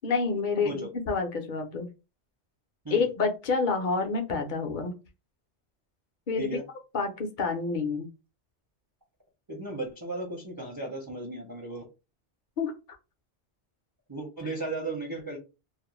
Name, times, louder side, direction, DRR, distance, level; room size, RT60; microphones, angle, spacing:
voice 1, 0.0-1.9 2.9-5.0 6.3-6.6 6.9-8.1 12.6-12.7, left 4 dB, 55° left, 4 dB, 0.6 m, -28 dB
voice 2, 9.5-11.9 14.1-15.4, right 2 dB, 30° right, -1 dB, 0.4 m, -35 dB
2.4 x 2.1 x 3.0 m, 0.29 s
omnidirectional pair, 1.2 m